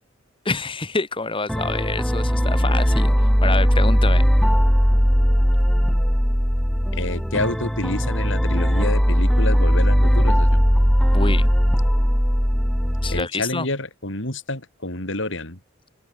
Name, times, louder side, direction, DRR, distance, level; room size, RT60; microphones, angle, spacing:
voice 1, 0.4-4.3 11.1-11.5 13.0-13.7, left 3 dB, 25° left, 1.4 m, -27 dB
sound 1, 1.5-13.2, equal, ahead, 0.5 m, -18 dB
voice 2, 6.9-10.6 13.1-15.6, left 2 dB, 65° left, 7.3 m, -28 dB
open air
head